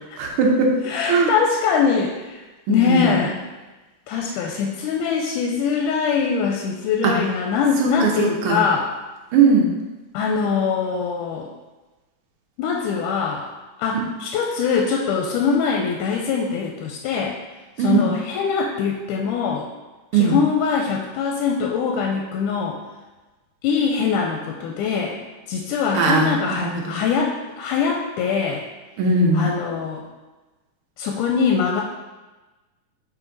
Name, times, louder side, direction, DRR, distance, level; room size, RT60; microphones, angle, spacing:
voice 1, 0.2-0.8 1.1-1.3 2.7-3.2 7.0-7.1 7.8-8.6 9.3-9.7 17.8-18.1 20.1-20.4 25.9-27.0 29.0-29.5, right 4 dB, 75° right, 0 dB, 1.2 m, -19 dB
voice 2, 0.9-2.4 2.7-3.3 4.1-8.9 10.1-11.5 12.6-13.5 13.8-17.4 17.8-19.7 20.1-22.8 23.6-25.2 25.5-28.6 29.3-30.0 31.0-31.8, left 6 dB, 85° left, 0 dB, 2.1 m, -22 dB
6.0 x 4.4 x 3.9 m, 1.2 s
omnidirectional pair, 3.6 m